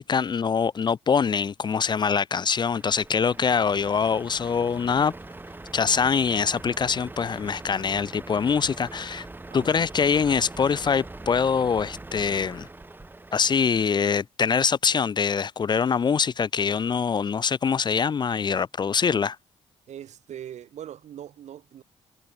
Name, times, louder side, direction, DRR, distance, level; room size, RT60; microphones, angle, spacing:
voice 1, 0.0-5.1 5.7-9.3 9.5-12.7 13.3-19.4, left 6 dB, 35° left, 0.4 m, -24 dB
Truck, 2.6-13.8, right 2 dB, 15° right, 1.0 m, -42 dB
voice 2, 9.5-9.8 19.9-21.8, right 10 dB, 65° right, 1.2 m, -41 dB
supercardioid pair, 55°, 13 cm